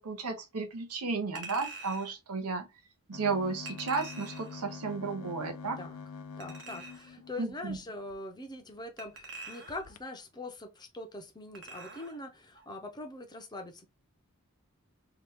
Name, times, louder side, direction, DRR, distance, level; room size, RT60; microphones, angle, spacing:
voice 1, 0.0-2.7 3.1-5.8 7.4-7.8, right 4 dB, 85° right, 0.7 m, -33 dB
Chink clink, 1.4-2.1 3.7-4.6 6.4-7.2 9.0-10.0 11.5-12.2 12.6-12.7, right 2 dB, 55° right, 0.8 m, -45 dB
sound 1, 3.1-8.1 8.7-8.8 9.1-9.3 9.7-10.0, left 5 dB, 90° left, 0.4 m, -46 dB
voice 2, 5.6-6.0 6.4-13.9, left 2 dB, 20° left, 0.5 m, -43 dB
2.9 x 2.3 x 3.4 m
head